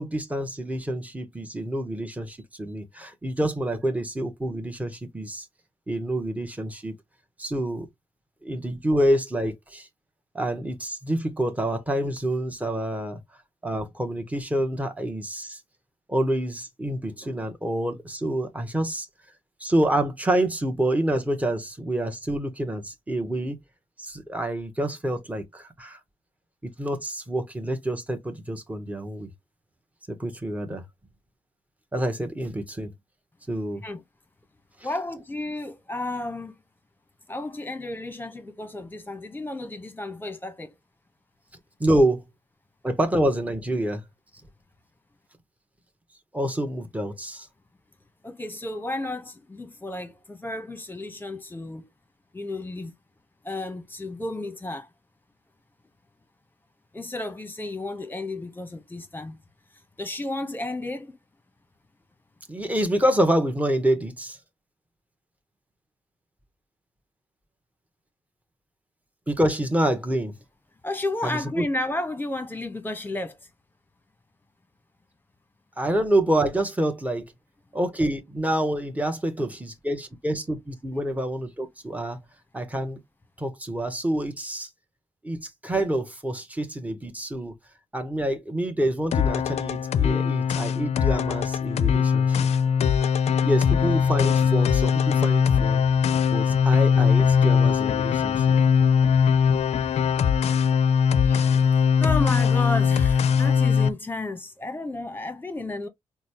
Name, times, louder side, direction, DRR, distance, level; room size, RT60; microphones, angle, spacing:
voice 1, 0.0-5.5 5.9-6.9 7.4-7.9 8.4-9.9 10.3-13.2 13.6-15.6 16.1-19.1 19.6-23.6 24.0-26.0 26.8-29.3 30.1-30.8 31.9-32.9 33.5-33.8 41.8-42.2 42.8-44.0 46.3-47.5 62.5-64.4 69.3-70.3 71.2-71.6 75.8-77.3 77.7-82.2 82.5-83.0 83.4-84.7 85.2-87.5 87.9-92.5 93.4-95.8 96.3-98.6, right 1 dB, 15° right, 1.2 m, -27 dB
voice 2, 34.8-36.6 37.3-40.7 48.2-51.9 52.3-52.9 53.4-54.9 56.9-59.4 60.0-61.2 70.8-73.4 101.2-105.9, left 2 dB, 15° left, 1.1 m, -32 dB
sound 1, 89.1-103.9, left 7 dB, 70° left, 0.4 m, -21 dB
3.9 x 2.3 x 3.1 m
supercardioid pair, 50°, 11 cm